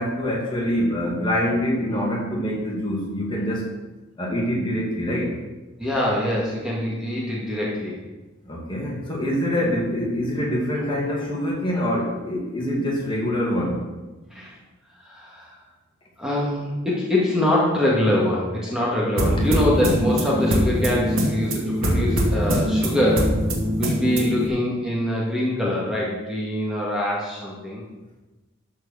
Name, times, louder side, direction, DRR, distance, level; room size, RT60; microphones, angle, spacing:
voice 1, 0.0-3.7 4.2-5.4 8.5-13.8 22.4-22.5, equal, 25° left, -3 dB, 2.3 m, -25 dB
voice 2, 5.8-8.0 14.3-14.6 15.0-15.5 16.2-23.3 23.8-27.8, left 1 dB, 5° right, -5 dB, 1.9 m, -24 dB
sound 1, 19.2-24.5, equal, 85° right, 2.2 m, -22 dB
12.5 x 4.8 x 6.4 m, 1.1 s
head